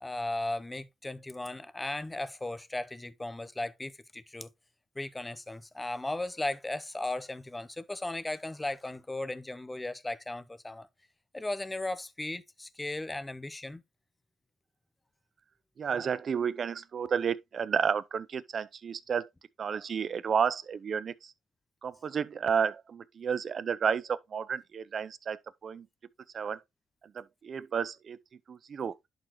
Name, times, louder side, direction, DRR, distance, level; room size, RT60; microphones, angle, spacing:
voice 1, 0.0-4.5 5.0-10.9 11.3-13.8, left 2 dB, 15° left, 0.6 m, -36 dB
voice 2, 15.8-19.3 19.6-21.3 21.8-25.9 26.3-26.6 27.1-28.2 28.5-28.9, right 7 dB, 50° right, 0.5 m, -31 dB
11.0 x 4.0 x 3.0 m
cardioid pair, 90°, 0 cm